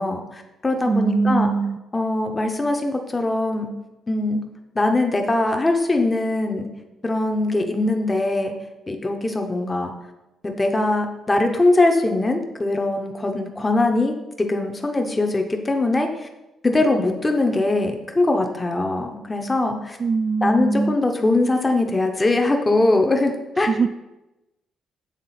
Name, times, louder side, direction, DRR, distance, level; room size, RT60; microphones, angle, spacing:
voice 1, 0.0-1.5 1.9-3.7 4.1-4.4 4.7-6.7 7.0-8.5 8.9-9.9 10.4-16.3 16.6-20.0 20.4-23.7, left 2 dB, 20° left, 4 dB, 0.7 m, -21 dB
voice 2, 0.9-1.8 20.0-21.0 23.7-23.9, right 4 dB, 40° right, 12 dB, 0.3 m, -21 dB
7.4 x 3.6 x 4.1 m, 0.99 s
cardioid pair, 90°, 0 cm